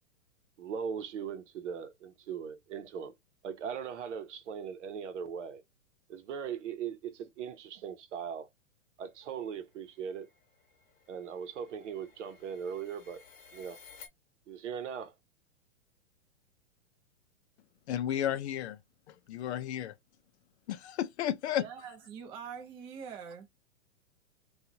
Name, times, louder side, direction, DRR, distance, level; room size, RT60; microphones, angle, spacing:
voice 1, 0.6-3.1 3.4-5.6 6.1-8.5 9.0-10.3 11.1-13.2 13.5-13.8 14.5-15.1, right 7 dB, 65° right, 0.8 m, -39 dB
sound 1, 9.3-14.1, left 5 dB, 40° left, 1.0 m, -57 dB
voice 2, 17.9-18.8 19.1-19.9 20.7-21.7, left 11 dB, 60° left, 0.5 m, -33 dB
voice 3, 21.6-23.5, right 7 dB, 15° right, 0.4 m, -44 dB
2.8 x 2.4 x 2.6 m
hypercardioid pair, 130°, 39 cm